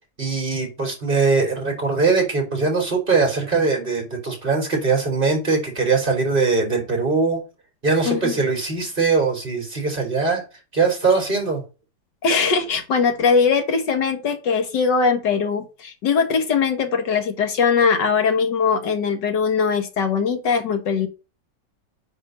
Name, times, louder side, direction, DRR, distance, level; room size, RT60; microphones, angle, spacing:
voice 1, 0.2-7.4 7.8-10.4 10.7-11.6, right 4 dB, 30° right, 0 dB, 3.7 m, -21 dB
voice 2, 8.1-8.4 12.2-21.1, left 5 dB, 80° left, 7 dB, 1.9 m, -20 dB
9.5 x 3.6 x 6.3 m, 0.31 s
omnidirectional pair, 1.9 m